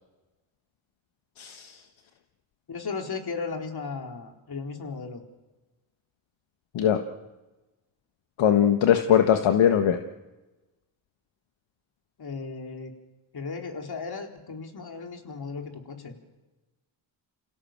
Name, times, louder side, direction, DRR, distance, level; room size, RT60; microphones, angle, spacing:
voice 1, 1.4-1.7 6.7-7.0 8.4-10.0, left 9 dB, 65° left, 6 dB, 1.7 m, -20 dB
voice 2, 2.7-5.2 12.2-12.9 13.3-16.2, left 4 dB, 45° left, 3 dB, 4.3 m, -36 dB
28.0 x 17.0 x 7.6 m, 1.1 s
supercardioid pair, 60°, 50 cm